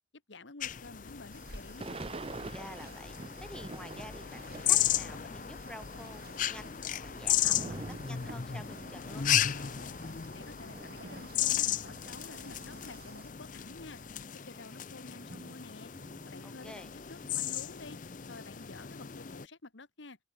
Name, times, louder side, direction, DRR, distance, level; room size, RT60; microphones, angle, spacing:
voice 1, 0.3-1.9 10.3-14.0 14.5-15.9 16.2-18.0 18.3-20.2, left 2 dB, 80° left, 1.6 m, -50 dB
sound 1, 0.6-19.5, left 11 dB, 45° left, 0.6 m, -35 dB
sound 2, 1.3-13.3, right 3 dB, 50° right, 4.2 m, -54 dB
Thunder / Rain, 1.8-5.4 5.7-12.8 13.4-13.5 13.7-16.9 17.2-18.9, right 2 dB, 30° right, 0.6 m, -48 dB
voice 2, 2.5-7.7 8.0-9.4 16.4-17.0, left 1 dB, 5° left, 1.5 m, -49 dB
open air
head